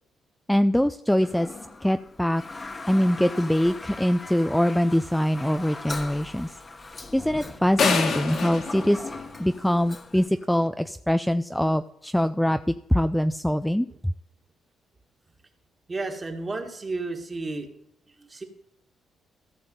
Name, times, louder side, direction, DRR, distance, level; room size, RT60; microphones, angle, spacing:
voice 1, 0.5-1.5 1.8-2.4 2.9-6.5 7.1-9.0 9.4-13.9, equal, 5° left, 10 dB, 0.4 m, -23 dB
Toilet flush, 1.1-10.3, left 3 dB, 30° left, 1.2 m, -40 dB
sound 1, 7.8-9.9, left 5 dB, 60° left, 1.8 m, -26 dB
voice 2, 15.9-17.7 18.2-18.4, right 3 dB, 30° right, 4 dB, 1.8 m, -32 dB
14.0 x 6.1 x 5.3 m, 0.77 s
cardioid pair, 90°, 0 cm